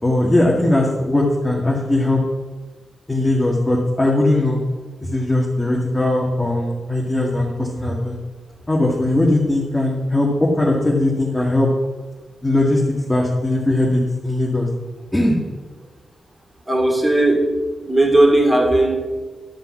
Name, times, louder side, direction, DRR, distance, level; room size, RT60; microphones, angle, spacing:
voice 1, 0.0-2.2 3.1-4.6 5.1-8.2 8.7-11.7 12.4-12.8 13.1-14.7 15.1-15.4, left 1 dB, 10° left, -4 dB, 2.0 m, -19 dB
voice 2, 16.7-17.4 17.9-19.0, right 1 dB, 20° right, 0 dB, 2.7 m, -16 dB
12.0 x 5.6 x 7.3 m, 1.3 s
cardioid pair, 80°, 0 cm